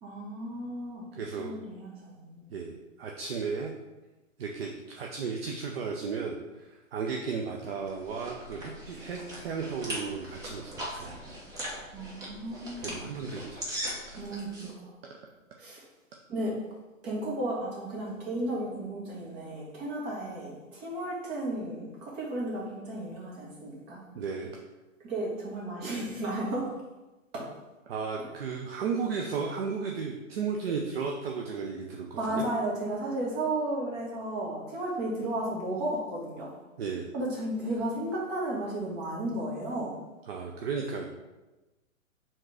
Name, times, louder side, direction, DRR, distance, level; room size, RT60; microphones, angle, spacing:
voice 1, 0.0-1.1 1.4-2.6 11.9-13.0 14.2-14.9 15.6-15.8 16.3-16.5 17.0-24.0 25.0-26.7 27.3-27.5 32.2-36.5 37.1-39.9, right 1 dB, 25° right, -4 dB, 1.7 m, -34 dB
voice 2, 1.2-1.5 2.5-3.7 4.4-11.1 12.8-13.6 24.1-24.5 27.9-32.4 36.8-37.1 40.3-41.1, right 5 dB, 50° right, 0 dB, 0.7 m, -34 dB
sound 1, 7.6-14.7, right 1 dB, 10° right, 0.9 m, -40 dB
5.2 x 3.7 x 4.9 m, 1.1 s
hypercardioid pair, 135°, 40 cm